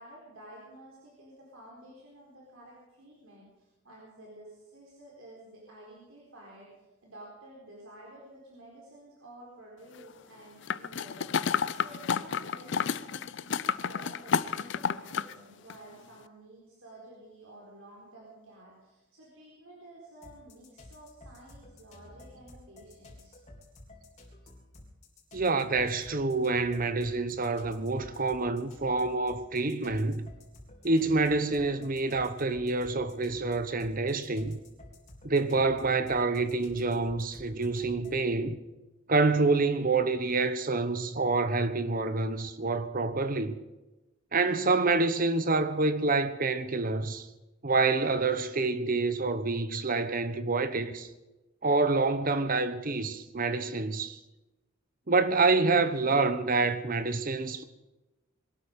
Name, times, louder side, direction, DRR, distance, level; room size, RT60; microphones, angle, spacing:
voice 1, 0.0-23.4, right 1 dB, 85° right, 4.3 m, -51 dB
sound 1, 10.7-15.3 15.7-15.8, left 6 dB, 60° left, 0.5 m, -30 dB
sound 2, 20.2-38.3, left 1 dB, 35° left, 3.7 m, -52 dB
voice 2, 25.3-30.3 30.8-34.6 35.2-38.6 39.1-43.5 44.3-47.3 47.6-51.1 51.6-54.2 55.1-57.6, right 3 dB, 40° right, 1.0 m, -27 dB
22.0 x 12.5 x 5.3 m
head